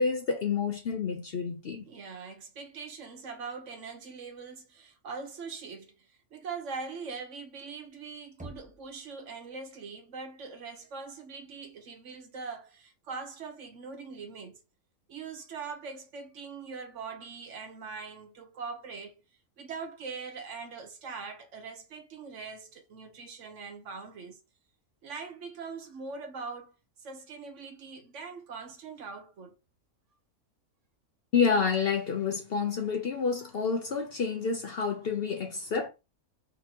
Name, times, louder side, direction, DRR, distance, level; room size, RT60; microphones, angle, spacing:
voice 1, 0.0-1.9 31.3-35.9, left 5 dB, 55° left, 0.7 m, -28 dB
voice 2, 1.9-14.6 15.1-19.2 19.6-24.4 25.0-29.5, right 5 dB, 65° right, 1.1 m, -42 dB
Knock, 8.4-9.3, right 1 dB, 10° right, 0.5 m, -47 dB
4.3 x 3.9 x 2.8 m
omnidirectional pair, 1.5 m